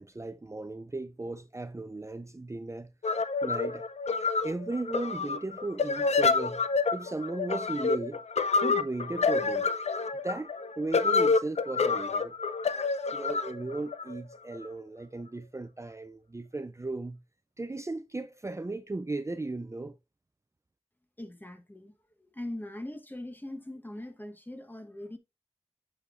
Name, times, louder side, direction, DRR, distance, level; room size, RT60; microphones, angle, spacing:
voice 1, 0.0-2.9 3.4-3.9 4.4-6.6 6.9-8.2 8.6-9.7 10.2-12.4 13.1-17.2 17.6-20.0, right 2 dB, 25° right, 0.5 m, -36 dB
sound 1, 3.0-14.7, left 4 dB, 80° left, 0.5 m, -28 dB
voice 2, 21.2-21.9 22.2-25.2, left 1 dB, 15° left, 1.1 m, -41 dB
8.6 x 6.3 x 2.5 m
wide cardioid pair, 55°, 11 cm